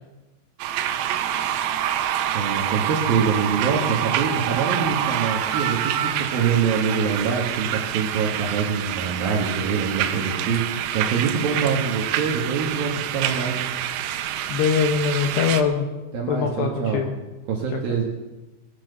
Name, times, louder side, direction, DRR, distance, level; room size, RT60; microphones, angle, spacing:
sound 1, 0.6-15.6, right 10 dB, 80° right, 3.4 m, -26 dB
voice 1, 2.3-13.6 16.1-17.0 17.5-18.0, right 6 dB, 60° right, 0 dB, 2.6 m, -25 dB
voice 2, 14.5-15.8 16.3-17.1 17.7-18.0, left 6 dB, 75° left, 4 dB, 2.6 m, -23 dB
20.5 x 7.4 x 6.7 m, 1.1 s
omnidirectional pair, 5.9 m